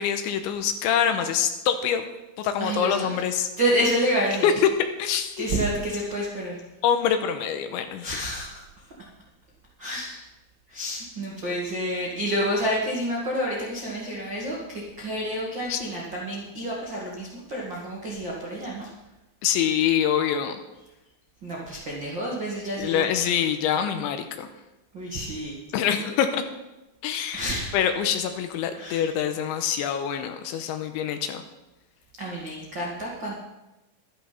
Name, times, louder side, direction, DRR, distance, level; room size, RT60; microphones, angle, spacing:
voice 1, 0.0-2.1 2.4-3.5 4.4-4.5 5.0-5.5 6.8-8.1 15.7-15.8 19.4-20.6 22.8-24.5 25.7-26.4 27.0-27.5 27.7-31.4, left 8 dB, 80° left, 7 dB, 3.0 m, -25 dB
voice 2, 2.6-3.2 3.6-4.5 5.4-6.6 8.0-8.6 9.8-10.2 10.7-18.9 21.4-23.3 24.9-25.6 27.3-27.8 28.7-29.1 32.2-33.3, equal, 50° right, -4 dB, 1.3 m, -29 dB
12.5 x 11.0 x 5.9 m, 1.0 s
omnidirectional pair, 5.9 m